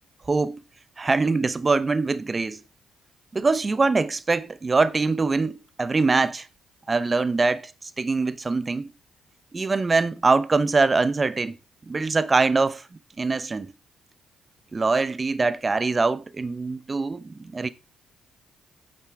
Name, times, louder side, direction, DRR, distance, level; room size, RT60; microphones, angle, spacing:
voice 1, 0.3-0.6 1.0-2.6 3.3-6.5 6.9-7.7 8.0-8.9 9.5-11.5 11.9-12.8 13.2-13.7 14.7-17.7, right 3 dB, 35° right, 0.9 m, -23 dB
9.1 x 8.0 x 3.7 m
hypercardioid pair, 50°, 0 cm